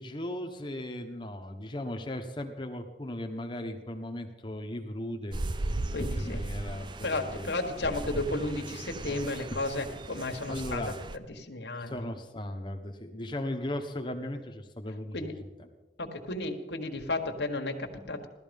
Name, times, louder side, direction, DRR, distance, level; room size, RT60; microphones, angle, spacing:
voice 1, 0.0-7.5 9.1-9.2 10.5-11.0 11.8-15.3, left 1 dB, 25° left, 4 dB, 1.3 m, -37 dB
sound 1, 5.3-11.2, right 2 dB, 25° right, 0.5 m, -37 dB
voice 2, 5.9-6.4 7.0-10.8 11.1-12.0 15.1-15.3 16.0-18.3, left 2 dB, 80° left, 4 dB, 1.6 m, -33 dB
16.5 x 13.0 x 5.4 m, 1.2 s
head